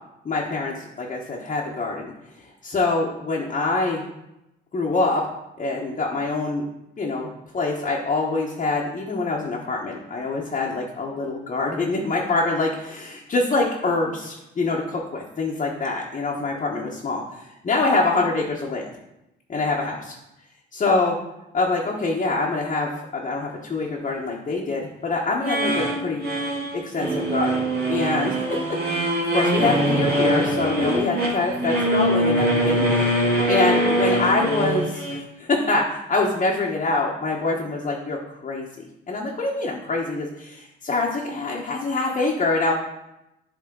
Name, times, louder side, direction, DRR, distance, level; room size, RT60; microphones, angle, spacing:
voice 1, 0.2-2.1 2.6-4.0 4.7-5.3 5.6-6.6 7.0-18.9 19.5-20.2 20.7-21.2 21.5-26.3 26.7-27.6 27.9-29.0 29.3-42.7, left 3 dB, 40° left, -3 dB, 1.2 m, -25 dB
sound 1, 25.4-35.2, right 1 dB, 50° right, 2.5 m, -23 dB
11.0 x 3.7 x 3.9 m, 0.89 s
cardioid pair, 90°, 20 cm